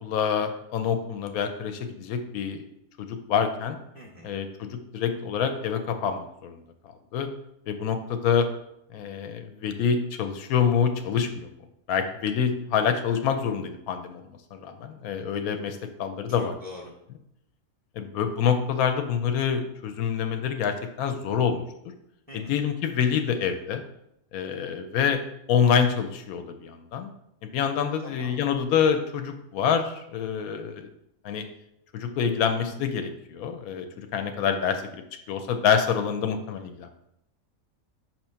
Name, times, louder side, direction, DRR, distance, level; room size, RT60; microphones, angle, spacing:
voice 1, 0.0-2.6 3.0-3.8 4.2-6.6 7.1-7.3 7.7-8.5 8.9-11.5 11.9-14.2 14.6-16.5 18.0-21.6 22.3-23.8 24.3-25.2 25.5-27.1 27.4-30.9 31.2-31.4 31.9-35.0 35.3-36.9, left 7 dB, 90° left, 7 dB, 1.1 m, -26 dB
voice 2, 3.9-4.4 16.4-16.9 22.3-22.6 28.0-28.4, left 2 dB, 10° left, -3 dB, 0.6 m, -43 dB
6.1 x 2.9 x 5.5 m, 0.80 s
omnidirectional pair, 1.5 m